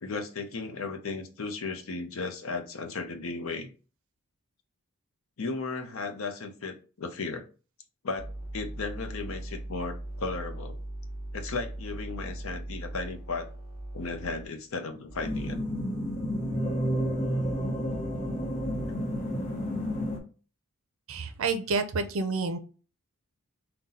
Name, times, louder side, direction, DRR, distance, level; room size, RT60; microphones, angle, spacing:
voice 1, 0.0-3.7 5.4-7.4 8.0-10.8 11.3-13.5 13.9-15.6, left 3 dB, 65° left, 6 dB, 0.6 m, -35 dB
sound 1, 8.2-14.4 15.1-15.6 17.9-18.9, right 1 dB, 10° right, 1.1 m, -40 dB
sound 2, 15.2-20.2, equal, 30° left, 1.0 m, -30 dB
voice 2, 21.1-22.6, right 4 dB, 65° right, 9 dB, 0.5 m, -29 dB
3.9 x 2.2 x 4.1 m, 0.36 s
head